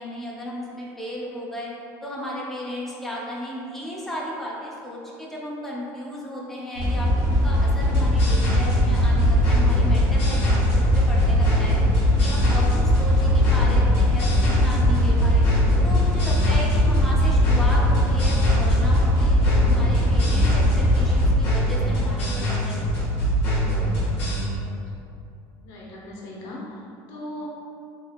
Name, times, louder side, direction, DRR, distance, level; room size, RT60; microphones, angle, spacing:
voice 1, 0.0-1.7 2.0-11.8 12.2-15.5 15.8-23.1, left 1 dB, 5° left, -5 dB, 0.4 m, -34 dB
sound 1, 6.8-21.3, left 1 dB, 50° right, 0.8 m, -20 dB
sound 2, 7.8-24.4, equal, 30° left, 1.2 m, -24 dB
voice 2, 25.6-26.8 27.1-27.5, left 1 dB, 55° left, -4 dB, 0.7 m, -39 dB
3.3 x 3.0 x 2.3 m, 2.6 s
cardioid pair, 180°, 8 cm